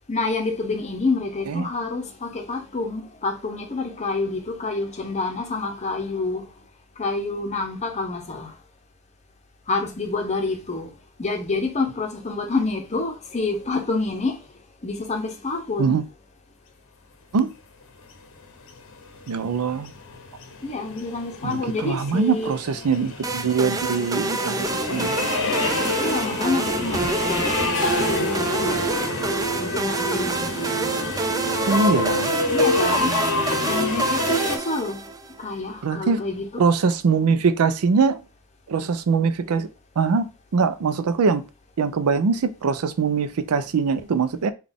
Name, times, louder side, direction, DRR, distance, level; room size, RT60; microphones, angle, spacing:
voice 1, 0.1-6.5 7.0-8.5 9.7-10.9 11.2-14.4 14.8-16.0 20.6-22.5 25.6-27.2 28.1-28.9 29.6-31.0 32.5-33.2 33.6-35.1 35.4-36.6, left 3 dB, 30° left, 0.7 m, -28 dB
sound 1, 18.7-34.6, left 3 dB, 65° left, 0.7 m, -28 dB
voice 2, 19.3-19.9 21.4-25.2 31.7-32.3 35.8-36.2 36.6-38.2 38.7-39.7 40.0-41.4 41.8-44.5, right 5 dB, 80° right, 0.4 m, -22 dB
sound 2, 23.2-35.4, right 3 dB, 15° right, 0.3 m, -27 dB
sound 3, 27.8-33.0, right 6 dB, 15° left, 1.1 m, -32 dB
3.8 x 2.3 x 3.5 m
head